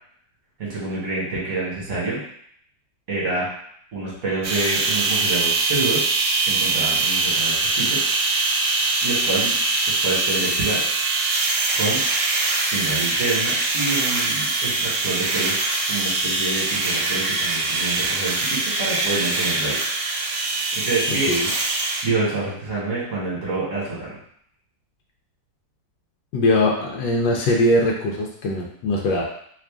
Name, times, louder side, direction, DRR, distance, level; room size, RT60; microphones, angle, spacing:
voice 1, 0.6-2.2 3.1-3.5 3.9-6.0 6.4-8.0 9.0-9.5 9.9-10.8 11.7-12.0 12.7-15.6 15.9-19.8 20.7-21.3 22.0-24.2, right 3 dB, 50° right, -6 dB, 1.5 m, -27 dB
sound 1, 4.4-22.0, right 3 dB, 75° right, 1.2 m, -23 dB
voice 2, 26.3-29.2, left 1 dB, 75° left, -1 dB, 1.2 m, -21 dB
3.2 x 2.4 x 3.5 m, 0.65 s
omnidirectional pair, 2.0 m